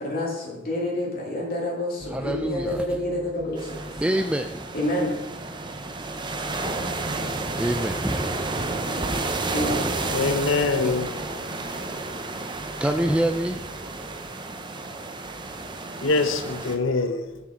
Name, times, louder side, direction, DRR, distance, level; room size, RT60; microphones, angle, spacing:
voice 1, 0.0-4.3 4.7-5.4 9.5-9.8, left 1 dB, 50° left, -3 dB, 2.3 m, -28 dB
voice 2, 2.1-2.8 4.0-4.7 5.7-9.5 12.6-14.2, right 1 dB, 5° right, 6 dB, 0.3 m, -29 dB
sound 1, 3.6-16.8, right 2 dB, 25° right, 0.7 m, -31 dB
voice 3, 10.1-11.2 16.0-17.4, left 3 dB, 85° left, 9 dB, 0.7 m, -24 dB
7.3 x 7.2 x 4.9 m, 0.99 s
head